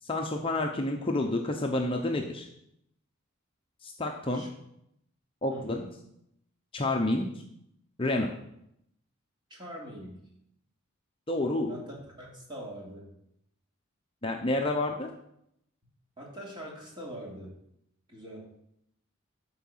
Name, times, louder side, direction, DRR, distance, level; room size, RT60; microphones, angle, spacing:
voice 1, 0.0-2.5 3.8-4.4 5.4-5.8 6.7-7.3 8.0-8.3 11.3-11.8 14.2-15.1, left 2 dB, 25° left, 2 dB, 0.7 m, -29 dB
voice 2, 5.5-5.9 9.5-10.2 11.7-13.1 16.2-17.5 18.1-18.5, equal, 20° right, -3 dB, 2.8 m, -43 dB
11.5 x 4.7 x 7.3 m, 0.78 s
head